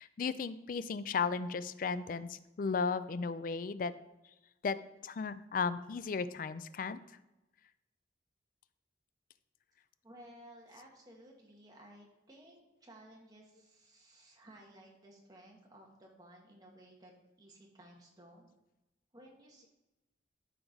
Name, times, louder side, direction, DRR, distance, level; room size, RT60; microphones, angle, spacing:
voice 1, 0.0-3.9 4.6-4.8 5.0-7.0, left 5 dB, 50° left, 14 dB, 0.4 m, -35 dB
voice 2, 10.0-17.1 17.4-18.5 19.1-19.7, right 1 dB, 20° right, -1 dB, 1.6 m, -57 dB
12.5 x 4.6 x 3.9 m, 0.98 s
head